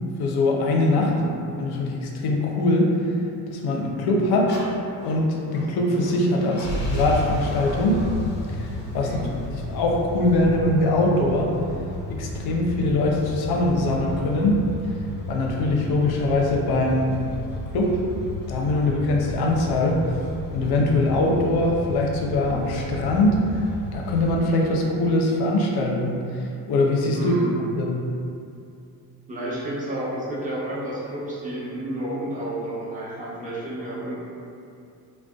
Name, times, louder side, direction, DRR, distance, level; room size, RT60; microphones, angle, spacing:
voice 1, 0.2-1.1 1.6-3.2 3.5-4.6 5.0-8.0 8.5-11.5 12.1-14.6 15.3-17.2 17.7-18.0 18.5-20.0 20.5-23.6 23.9-27.3 27.7-28.0, left 2 dB, 50° left, 0 dB, 0.5 m, -22 dB
voice 2, 0.9-1.3 9.0-9.3 27.1-27.5 29.3-34.2, right 1 dB, 15° right, -8 dB, 0.7 m, -31 dB
sound 1, 4.5-24.3, left 1 dB, 20° left, 0.7 m, -33 dB
2.5 x 2.2 x 2.3 m, 2.5 s
hypercardioid pair, 60°, 48 cm